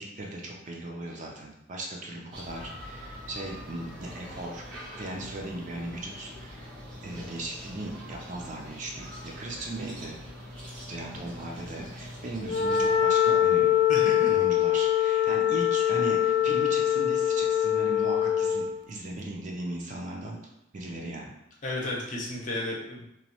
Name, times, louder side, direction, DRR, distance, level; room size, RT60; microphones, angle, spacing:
voice 1, 0.0-6.7 7.0-10.2 10.9-13.7 14.3-20.4 20.7-21.3, right 2 dB, 45° right, -1 dB, 0.5 m, -38 dB
sound 1, 2.3-13.0, equal, 90° right, 1.2 m, -43 dB
Wind instrument woodwind instrument, 12.4-18.7, left 10 dB, 75° left, 0.3 m, -23 dB
voice 2, 13.9-14.3 21.6-23.1, left 1 dB, 45° left, -3 dB, 0.7 m, -33 dB
3.0 x 2.2 x 2.9 m, 0.84 s
head